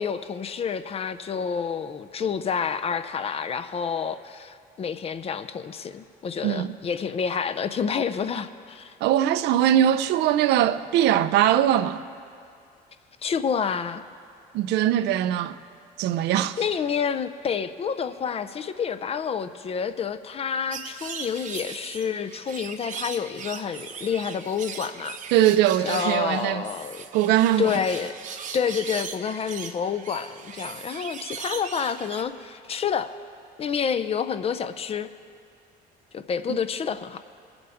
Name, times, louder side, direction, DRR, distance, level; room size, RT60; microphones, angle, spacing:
voice 1, 0.0-8.9 13.2-14.0 16.6-25.2 25.8-27.0 27.6-28.1 28.5-33.1 33.6-35.1 36.1-37.2, left 7 dB, 35° left, 0.5 m, -28 dB
voice 2, 6.4-6.7 9.0-12.0 14.5-15.6 16.0-16.6 25.3-26.6 27.1-27.7, right 11 dB, 85° right, 0.5 m, -21 dB
sound 1, 20.7-32.2, right 7 dB, 50° right, 0.9 m, -39 dB
22.0 x 7.9 x 3.5 m
cardioid pair, 110°, 17 cm